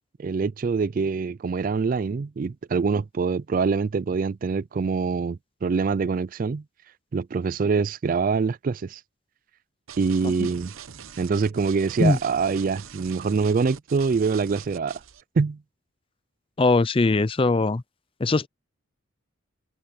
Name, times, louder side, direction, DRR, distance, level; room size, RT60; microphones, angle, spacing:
voice 1, 0.2-6.6 7.1-9.0 10.0-10.7 11.2-15.0 15.4-15.6, right 5 dB, 40° right, 0.3 m, -25 dB
sound 1, 9.9-15.2, right 7 dB, 85° right, 0.9 m, -43 dB
voice 2, 16.6-17.8 18.2-18.5, left 3 dB, 25° left, 0.5 m, -20 dB
head